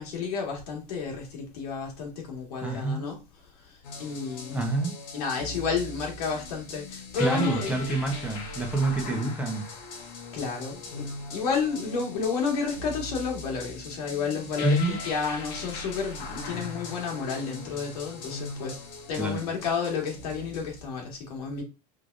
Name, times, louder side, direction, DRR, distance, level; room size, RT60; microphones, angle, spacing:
voice 1, 0.0-3.2 3.6-4.7 5.1-8.0 10.3-18.8 19.1-21.6, left 5 dB, 80° left, 2.0 m, -31 dB
voice 2, 2.6-3.1 4.5-4.9 7.2-9.7 14.6-15.0 19.2-19.5, right 2 dB, 5° right, 1.0 m, -27 dB
sound 1, 3.8-20.8, left 3 dB, 55° left, 1.4 m, -40 dB
4.8 x 3.5 x 2.6 m
supercardioid pair, 130°, 20 cm